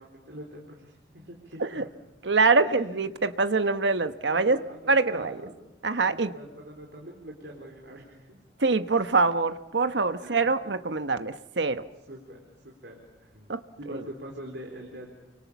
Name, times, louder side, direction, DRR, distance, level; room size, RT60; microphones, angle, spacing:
voice 1, 0.0-1.9 2.6-3.1 4.0-5.5 6.0-8.4 10.2-10.6 12.1-13.5 13.8-15.1, equal, 65° right, 0 dB, 4.3 m, -44 dB
voice 2, 2.2-4.6 4.9-5.4 5.8-6.3 8.6-11.8 13.5-13.6 13.9-14.0, right 3 dB, 80° right, 10 dB, 1.1 m, -24 dB
30.0 x 24.5 x 7.2 m, 0.99 s
head